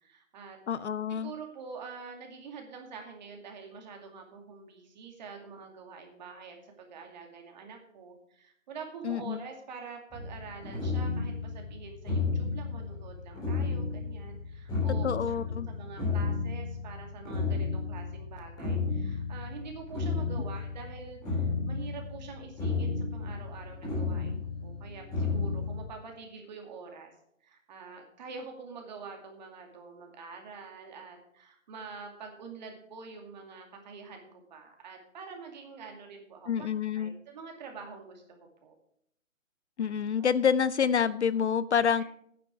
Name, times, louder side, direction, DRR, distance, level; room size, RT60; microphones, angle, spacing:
voice 1, 0.0-0.6 1.1-15.4 15.7-27.1 27.4-36.7 36.9-38.7 40.2-40.3 42.0-42.1, right 5 dB, 35° right, 3 dB, 2.4 m, -46 dB
voice 2, 0.7-1.3 9.0-9.4 15.0-15.7 36.5-37.1 39.8-42.0, left 7 dB, 60° left, 17 dB, 0.6 m, -27 dB
sound 1, 10.1-25.8, left 4 dB, 10° left, 3.5 m, -33 dB
11.0 x 9.5 x 4.7 m, 0.69 s
hypercardioid pair, 160°, 40 cm